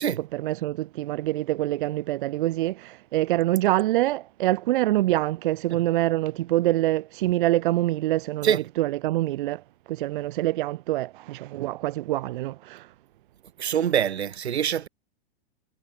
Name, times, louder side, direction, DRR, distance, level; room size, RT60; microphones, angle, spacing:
voice 1, 0.3-8.5 8.8-12.9, right 16 dB, 55° right, 0.9 m, -25 dB
voice 2, 13.6-14.9, right 9 dB, 85° right, 6.2 m, -25 dB
hypercardioid pair, 150°, 32 cm